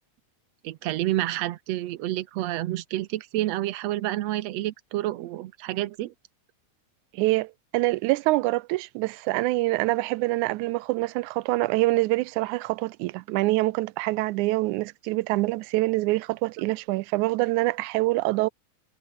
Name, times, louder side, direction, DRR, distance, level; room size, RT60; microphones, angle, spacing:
voice 1, 0.6-6.1, right 15 dB, 70° right, 1.8 m, -29 dB
voice 2, 7.1-18.5, right 20 dB, 90° right, 2.0 m, -25 dB
omnidirectional pair, 3.3 m